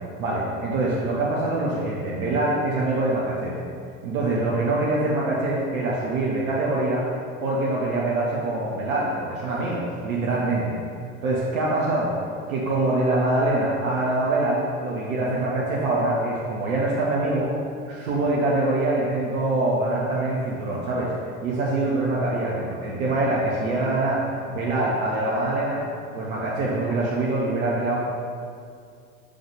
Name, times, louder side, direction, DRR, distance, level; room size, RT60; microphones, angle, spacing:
voice 1, 0.2-3.6 4.0-7.1 7.4-10.8 11.2-12.1 12.5-17.5 17.9-21.1 21.4-24.2 24.5-25.8 26.1-28.0, right 2 dB, 70° right, -4 dB, 1.2 m, -24 dB
5.7 x 5.2 x 5.1 m, 2.3 s
figure-of-eight pair, 75°, 43 cm